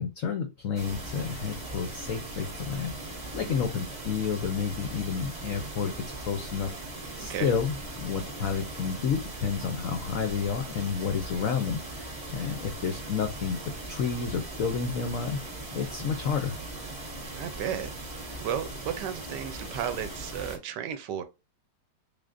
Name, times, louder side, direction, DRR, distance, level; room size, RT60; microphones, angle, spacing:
voice 1, 0.0-2.9 3.3-6.7 7.2-13.6 13.9-15.4 15.7-16.6, left 6 dB, 75° left, 0.7 m, -30 dB
sound 1, 0.7-20.6, right 2 dB, 30° right, 0.9 m, -39 dB
voice 2, 17.3-17.9 18.4-21.2, right 9 dB, 75° right, 1.1 m, -33 dB
3.5 x 3.4 x 2.5 m
omnidirectional pair, 2.0 m